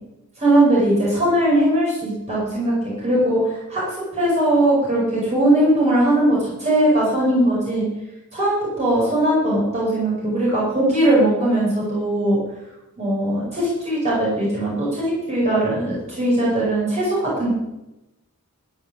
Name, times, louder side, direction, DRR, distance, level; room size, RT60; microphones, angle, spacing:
voice 1, 0.4-7.8 8.3-12.4 13.0-17.5, right 1 dB, 30° right, -6 dB, 5.3 m, -19 dB
14.5 x 5.8 x 9.6 m, 0.94 s
head